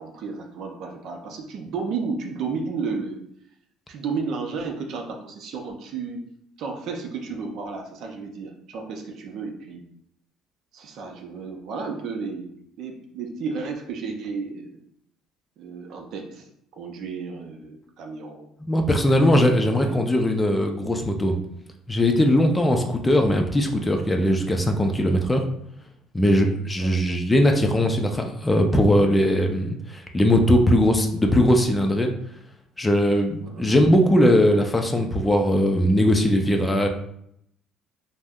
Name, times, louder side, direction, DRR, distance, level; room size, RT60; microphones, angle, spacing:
voice 1, 0.0-3.2 3.9-6.2 6.6-9.9 10.7-14.8 15.6-16.5 16.8-18.5 18.9-20.1 26.8-27.0 33.4-33.7, right 4 dB, 65° right, 2 dB, 0.6 m, -33 dB
voice 2, 18.6-21.4 21.9-25.4 26.1-32.1 32.8-36.9, equal, 15° left, 4 dB, 0.5 m, -20 dB
2.6 x 2.1 x 3.5 m, 0.71 s
supercardioid pair, 90°, 0 cm